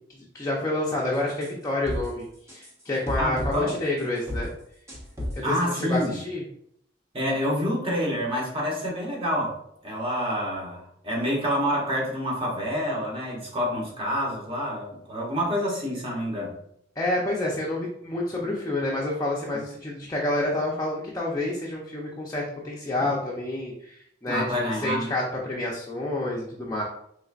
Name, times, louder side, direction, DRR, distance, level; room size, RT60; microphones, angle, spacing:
voice 1, 0.3-2.2 2.5-4.5 5.3-6.4 17.0-26.8, left 2 dB, 20° left, -4 dB, 0.6 m, -28 dB
sound 1, 1.3-1.5 1.8-2.1 2.5-2.7 3.1-4.0 4.3-4.4 4.9-5.3 5.8-6.0, left 1 dB, 15° right, 1.0 m, -32 dB
voice 2, 3.2-3.7 5.4-6.2 7.1-16.6 23.0-23.1 24.3-25.1, equal, 30° right, -3 dB, 1.2 m, -28 dB
4.2 x 3.2 x 2.4 m, 0.71 s
head